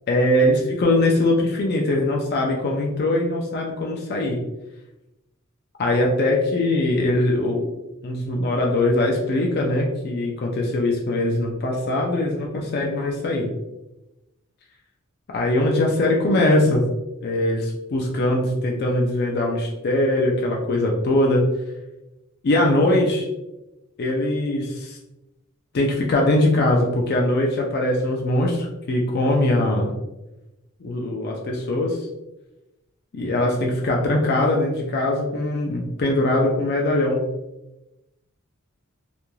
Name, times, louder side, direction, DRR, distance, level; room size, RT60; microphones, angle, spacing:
voice 1, 0.1-4.4 5.8-7.7 8.0-13.5 15.3-16.8 17.2-21.4 22.4-23.3 24.0-25.0 25.7-29.9 30.8-32.1 33.1-37.2, left 1 dB, 50° left, 0 dB, 0.4 m, -21 dB
3.0 x 2.4 x 2.2 m, 0.96 s
head